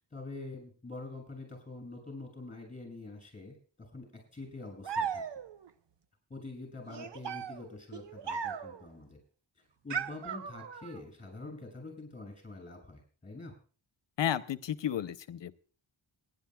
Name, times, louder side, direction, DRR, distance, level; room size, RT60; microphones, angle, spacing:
voice 1, 0.1-5.2 6.3-9.2 9.8-13.5, left 2 dB, 15° left, 3 dB, 6.8 m, -45 dB
sound 1, 4.8-5.7 6.9-8.9 9.9-11.0, right 6 dB, 65° right, 0.9 m, -37 dB
voice 2, 14.2-15.6, left 10 dB, 65° left, 13 dB, 0.8 m, -33 dB
27.5 x 11.0 x 2.3 m, 0.39 s
wide cardioid pair, 115°, 47 cm